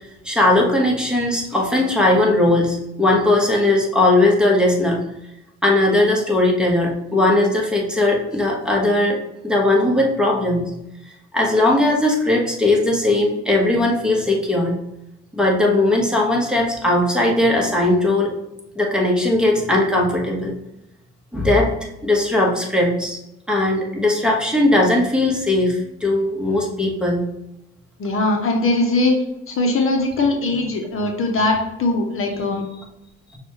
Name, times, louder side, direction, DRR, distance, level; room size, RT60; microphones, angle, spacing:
voice 1, 0.2-5.0 5.6-9.2 9.4-10.7 11.3-14.7 15.3-18.4 18.7-20.5 21.3-21.7 22.0-23.2 23.5-27.2, left 2 dB, 5° right, -3 dB, 1.1 m, -18 dB
voice 2, 28.0-29.2 29.5-32.6, left 2 dB, 45° left, 2 dB, 0.8 m, -20 dB
5.9 x 2.4 x 3.0 m, 0.86 s
supercardioid pair, 80°, 29 cm